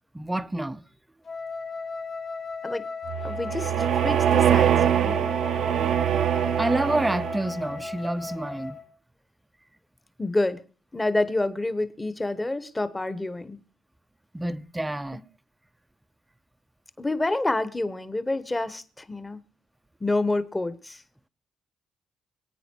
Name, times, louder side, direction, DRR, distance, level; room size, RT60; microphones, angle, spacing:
voice 1, 0.1-0.8 6.6-8.8 14.3-15.2, right 1 dB, 10° right, 0.8 m, -28 dB
Wind instrument woodwind instrument, 1.2-8.9, left 4 dB, 50° left, 2.2 m, -36 dB
sound 1, 3.1-7.7, right 10 dB, 70° right, 0.9 m, -23 dB
voice 2, 3.2-5.3 10.2-10.6 10.9-13.6 17.0-19.4 20.0-21.0, left 2 dB, 15° left, 1.4 m, -28 dB
25.5 x 9.2 x 4.7 m
cardioid pair, 90°, 0 cm